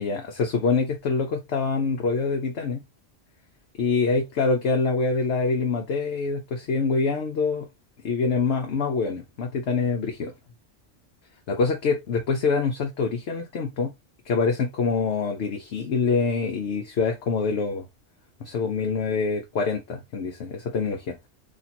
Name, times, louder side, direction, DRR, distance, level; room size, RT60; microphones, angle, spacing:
voice 1, 0.0-2.8 3.8-7.7 8.0-10.3 11.5-13.9 14.3-17.8 18.4-21.2, left 4 dB, 65° left, 1.0 m, -25 dB
2.9 x 2.8 x 4.1 m
omnidirectional pair, 1.3 m